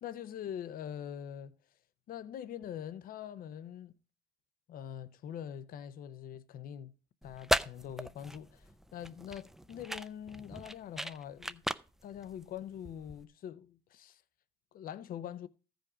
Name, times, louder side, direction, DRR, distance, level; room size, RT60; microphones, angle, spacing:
voice 1, 0.0-1.6 2.1-4.0 4.7-6.9 7.2-11.6 12.0-14.2 14.7-15.5, left 9 dB, 60° left, 0.7 m, -44 dB
sound 1, 7.2-13.2, right 1 dB, ahead, 0.4 m, -37 dB
14.0 x 5.2 x 4.9 m
cardioid pair, 110°, 17 cm